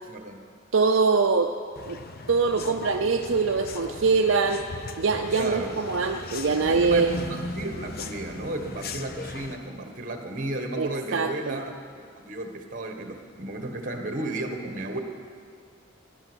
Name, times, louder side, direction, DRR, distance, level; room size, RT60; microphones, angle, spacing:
voice 1, 0.0-0.4 5.3-5.7 6.7-15.0, right 2 dB, 40° right, 5 dB, 1.5 m, -34 dB
voice 2, 0.7-1.5 1.9-2.0 2.3-4.6 5.0-7.2 10.8-11.6, right 4 dB, 70° right, 3 dB, 0.6 m, -23 dB
sound 1, 1.8-9.6, left 3 dB, 50° left, 0.8 m, -37 dB
18.0 x 11.0 x 6.3 m, 2.2 s
head